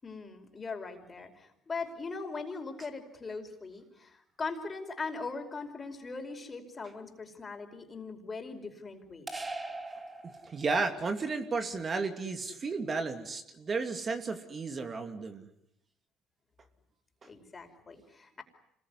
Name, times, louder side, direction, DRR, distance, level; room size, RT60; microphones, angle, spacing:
voice 1, 0.0-9.3 17.2-18.4, left 4 dB, 30° left, 5 dB, 5.1 m, -40 dB
sound 1, 9.3-10.9, right 2 dB, 20° right, 2.7 m, -40 dB
voice 2, 10.5-15.5, right 4 dB, 35° right, 7 dB, 2.7 m, -33 dB
26.5 x 21.0 x 9.7 m, 0.77 s
supercardioid pair, 85°, 0 cm